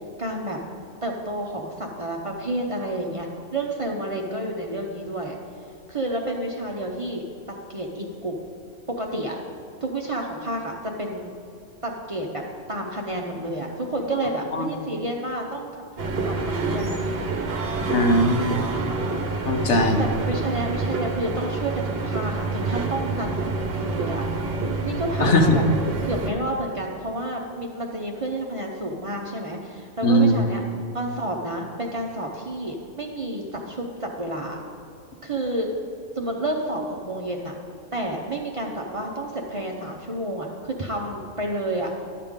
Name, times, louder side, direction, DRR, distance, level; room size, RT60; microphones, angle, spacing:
voice 1, 0.2-0.6 1.0-5.4 5.9-8.4 8.9-9.4 9.8-11.3 11.8-12.4 12.7-16.4 16.7-17.0 20.0-24.2 24.8-25.6 26.0-30.6 30.9-34.6 35.2-35.7 36.1-37.5 37.9-41.9, right 1 dB, 35° right, 0 dB, 0.7 m, -30 dB
sound 1, 16.0-26.3, right 3 dB, 55° right, 1.1 m, -27 dB
voice 2, 17.9-18.6 19.4-20.0 25.2-25.6 30.0-30.3, equal, 70° left, 5 dB, 1.1 m, -19 dB
12.0 x 7.5 x 3.6 m, 2.5 s
omnidirectional pair, 1.3 m